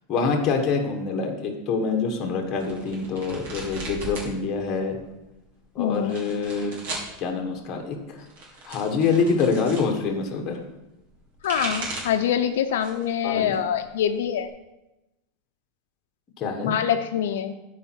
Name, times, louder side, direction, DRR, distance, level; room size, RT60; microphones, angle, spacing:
voice 1, 0.1-5.0 5.7-6.7 7.2-8.2 8.6-10.6 13.2-13.5 16.4-16.7, left 4 dB, 25° left, 3 dB, 1.2 m, -25 dB
sound 1, 2.6-4.3 4.6-5.3 5.9-7.1 8.1-9.9 11.1-12.2 12.7-13.1 13.5-14.5, right 2 dB, 70° right, 2.9 m, -36 dB
voice 2, 5.8-6.1 11.4-14.5 16.6-17.5, left 9 dB, 80° left, 6 dB, 0.6 m, -25 dB
12.5 x 4.9 x 4.5 m, 0.96 s
supercardioid pair, 175°, 0 cm